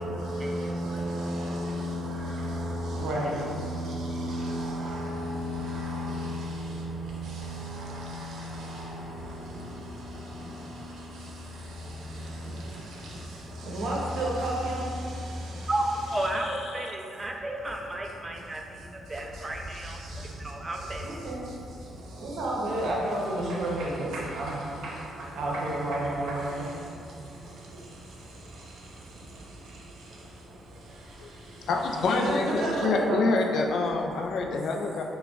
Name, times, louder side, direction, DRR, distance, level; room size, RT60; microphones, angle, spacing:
voice 1, 0.0-16.3 19.8-20.3 20.8-21.4 22.2-26.7 32.0-33.2, right 1 dB, 75° right, -3 dB, 0.7 m, -32 dB
voice 2, 15.7-21.1, right 1 dB, 20° right, 1 dB, 0.4 m, -33 dB
voice 3, 16.3-16.9 31.7-35.0, left 3 dB, 70° left, 3 dB, 0.3 m, -27 dB
5.8 x 2.2 x 2.3 m, 2.6 s
cardioid pair, 90°, 0 cm